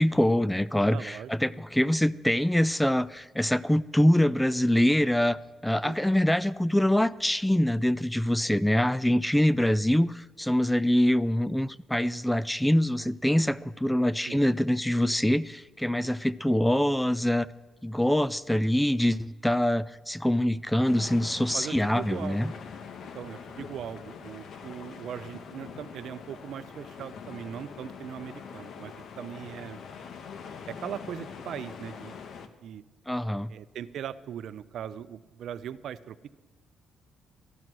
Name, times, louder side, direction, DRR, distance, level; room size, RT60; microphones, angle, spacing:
voice 1, 0.0-5.4 5.6-17.5 17.8-22.5 33.1-33.5, left 1 dB, 5° left, 18 dB, 0.4 m, -24 dB
voice 2, 0.9-1.6 5.8-6.1 14.3-14.4 21.5-22.5 23.1-29.8 30.7-32.1 32.6-32.8 33.5-36.2, right 9 dB, 70° right, 14 dB, 0.6 m, -40 dB
sound 1, 20.8-32.5, left 6 dB, 65° left, 1.0 m, -43 dB
14.5 x 11.0 x 6.1 m, 1.2 s
cardioid pair, 90°, 0 cm